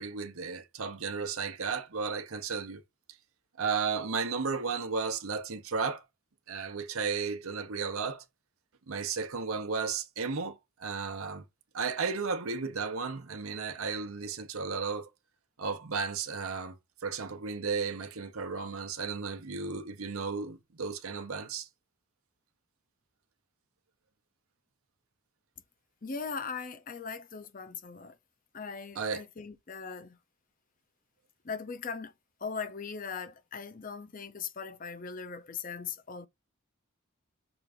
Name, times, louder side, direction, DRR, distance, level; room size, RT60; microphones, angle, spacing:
voice 1, 0.0-2.8 3.6-6.0 6.5-8.2 8.9-11.4 11.7-15.1 15.6-16.8 17.0-21.7 29.0-29.2, right 5 dB, 85° right, 0.8 m, -34 dB
voice 2, 26.0-28.2 28.5-30.2 31.4-32.1 32.4-36.3, left 5 dB, 40° left, 0.6 m, -39 dB
6.0 x 2.5 x 3.4 m
head